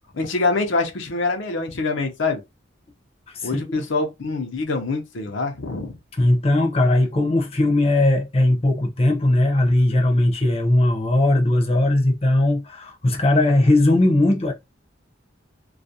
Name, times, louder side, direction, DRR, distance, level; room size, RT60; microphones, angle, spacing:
voice 1, 0.1-2.4 3.4-6.0, left 3 dB, 75° left, 0.6 m, -25 dB
voice 2, 3.3-3.8 6.1-14.5, left 1 dB, 30° left, 0.6 m, -19 dB
2.3 x 2.1 x 2.7 m
head